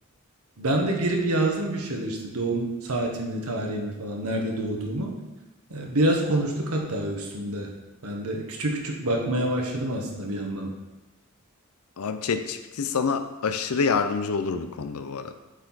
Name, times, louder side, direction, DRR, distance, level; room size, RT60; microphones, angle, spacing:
voice 1, 0.6-5.1 5.7-7.7 8.0-10.7, right 1 dB, 85° right, 1 dB, 1.3 m, -27 dB
voice 2, 12.0-15.3, left 5 dB, 80° left, 9 dB, 0.6 m, -27 dB
7.9 x 4.5 x 4.0 m, 1.1 s
head